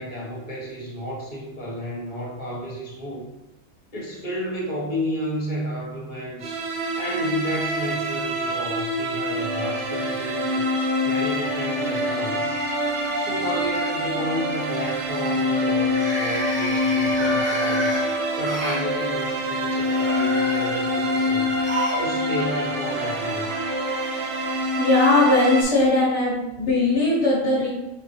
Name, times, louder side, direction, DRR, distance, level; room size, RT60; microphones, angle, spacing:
voice 1, 0.0-3.3 3.9-6.6 6.9-10.6 11.0-12.6 13.2-17.9 18.4-21.5 22.0-23.5, equal, 35° left, -4 dB, 1.4 m, -32 dB
sound 1, 6.4-25.6, left 1 dB, 65° right, 0.9 m, -25 dB
sound 2, 12.8-12.9 13.3-13.6 15.7-18.8 19.7-22.1 22.4-22.5 23.6-23.7, equal, 10° right, 0.8 m, -31 dB
voice 2, 24.8-27.7, left 2 dB, 55° left, -7 dB, 1.4 m, -19 dB
4.3 x 3.9 x 3.1 m, 0.94 s
omnidirectional pair, 1.4 m